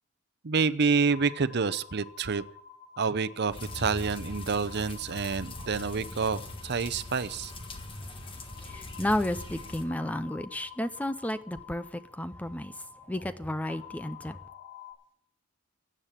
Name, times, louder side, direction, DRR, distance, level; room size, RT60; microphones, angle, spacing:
voice 1, 0.4-2.4 3.0-7.5, right 5 dB, 50° right, 0.7 m, -28 dB
sound 1, 1.0-14.9, left 8 dB, 50° left, 5.7 m, -50 dB
sound 2, 3.5-9.9, left 2 dB, 25° left, 1.5 m, -41 dB
voice 2, 8.6-14.4, left 1 dB, 5° left, 0.5 m, -32 dB
16.5 x 7.6 x 8.9 m
head